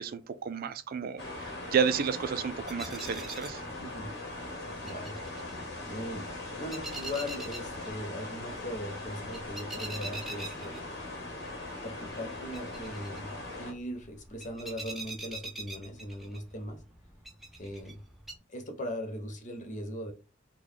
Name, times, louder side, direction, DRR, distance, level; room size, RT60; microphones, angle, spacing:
voice 1, 0.0-3.6, right 7 dB, 45° right, 0.3 m, -31 dB
sound 1, 1.2-13.7, left 2 dB, 55° left, 1.2 m, -40 dB
sound 2, 2.4-18.3, right 2 dB, ahead, 0.6 m, -46 dB
voice 2, 3.8-4.1 4.7-5.2 5.9-10.9 11.8-16.8 17.6-18.0 18.5-20.1, equal, 40° left, 0.7 m, -39 dB
3.7 x 2.2 x 3.1 m
head